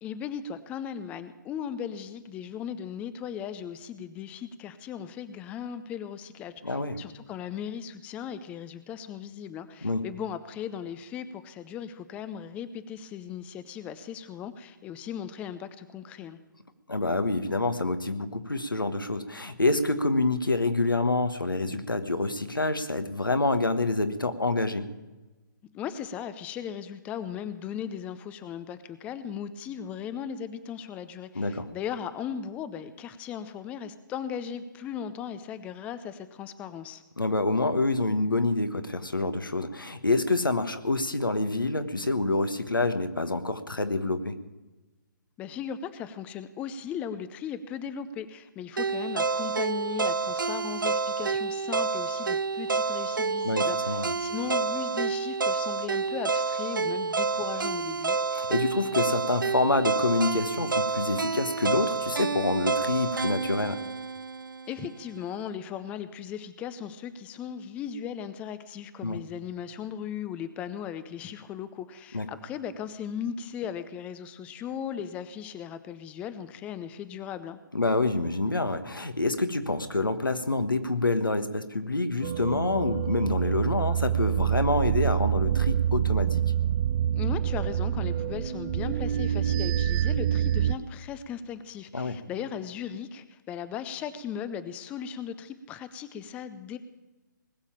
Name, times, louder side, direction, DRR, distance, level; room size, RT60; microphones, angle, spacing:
voice 1, 0.0-16.4 25.7-37.0 45.4-58.2 64.7-77.6 87.1-96.8, left 8 dB, 10° left, 13 dB, 0.5 m, -37 dB
voice 2, 6.6-7.0 9.8-10.0 16.9-24.9 31.3-31.7 37.2-44.4 53.4-54.1 58.3-63.8 69.0-69.2 72.1-72.3 77.7-86.4 91.9-92.2, left 2 dB, 85° left, 9 dB, 1.4 m, -27 dB
sound 1, 48.8-64.9, right 4 dB, 80° right, 0.5 m, -29 dB
sound 2, 82.2-90.7, right 10 dB, 30° right, 0.6 m, -26 dB
20.0 x 7.3 x 8.7 m, 1.1 s
figure-of-eight pair, 140°, 11 cm